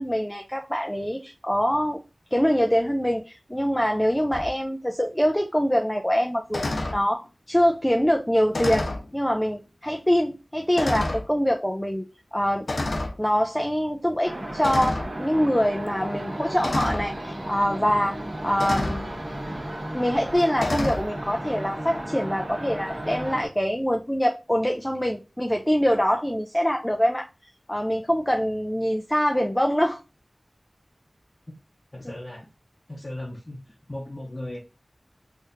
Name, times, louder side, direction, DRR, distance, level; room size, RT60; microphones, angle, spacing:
voice 1, 0.0-2.0 2.3-8.9 9.1-12.0 12.3-12.7 13.2-18.2 18.4-19.1 19.9-27.3 27.7-30.0 32.0-32.1, equal, 10° left, 0.4 m, -24 dB
sound 1, 4.3-4.5 6.5-7.0 8.5-9.1 9.9-10.0 10.8-11.3 12.7-13.2 14.6-15.1 16.6-17.1 18.6-19.1 20.6-21.1, left 2 dB, 70° left, 0.5 m, -28 dB
sound 2, 14.2-23.5, right 1 dB, 40° right, 1.1 m, -34 dB
voice 2, 31.9-32.5 32.9-34.6, left 1 dB, 40° left, 0.8 m, -37 dB
4.1 x 2.6 x 2.5 m
wide cardioid pair, 60°, 0 cm